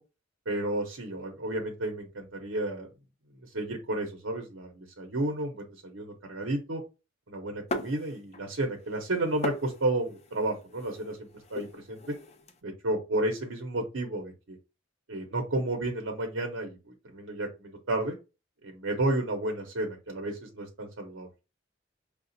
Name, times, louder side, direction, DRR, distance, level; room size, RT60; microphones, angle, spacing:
voice 1, 0.5-2.9 3.5-6.8 7.3-12.1 12.6-14.6 15.1-16.8 17.0-18.1 18.6-21.3, right 1 dB, 90° right, 2 dB, 0.8 m, -32 dB
sound 1, 7.7-8.6 8.8-12.5, left 1 dB, 35° left, 0.6 m, -39 dB
5.7 x 2.4 x 2.6 m, 0.29 s
head